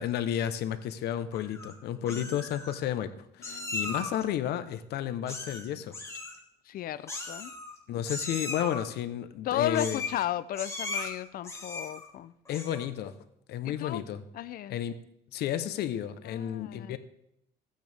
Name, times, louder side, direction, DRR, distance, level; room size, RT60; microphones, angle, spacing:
voice 1, 0.0-5.9 7.9-10.0 12.5-13.1 13.5-14.2 14.7-15.0 15.3-17.0, left 10 dB, 75° left, 11 dB, 1.0 m, -32 dB
Meow, 1.3-1.7 2.1-2.8 3.4-4.2 5.3-5.7 5.9-6.4 7.1-7.8 8.1-8.8 9.7-10.2 10.5-11.1 11.4-12.0 12.5-12.9, left 3 dB, 15° left, 2.3 m, -37 dB
voice 2, 6.7-7.5 9.4-12.3 13.6-14.1 14.3-14.8 16.2-17.0, left 12 dB, 60° left, 15 dB, 0.6 m, -34 dB
16.0 x 9.2 x 3.5 m, 0.77 s
cardioid pair, 110°, 17 cm